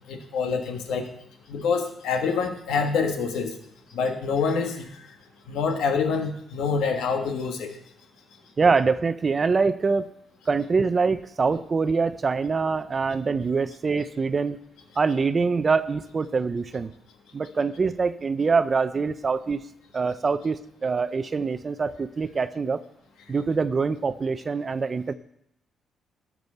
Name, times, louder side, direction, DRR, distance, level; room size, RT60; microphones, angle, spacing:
voice 1, 0.1-1.1 1.5-3.6 3.9-5.0 5.5-7.7, left 5 dB, 85° left, 5 dB, 1.5 m, -26 dB
voice 2, 8.6-10.1 10.5-14.6 15.0-16.9 17.3-19.6 19.9-22.8 23.3-25.1, right 4 dB, 35° right, 13 dB, 0.5 m, -24 dB
12.5 x 6.2 x 6.7 m, 0.75 s
cardioid pair, 90°, 0 cm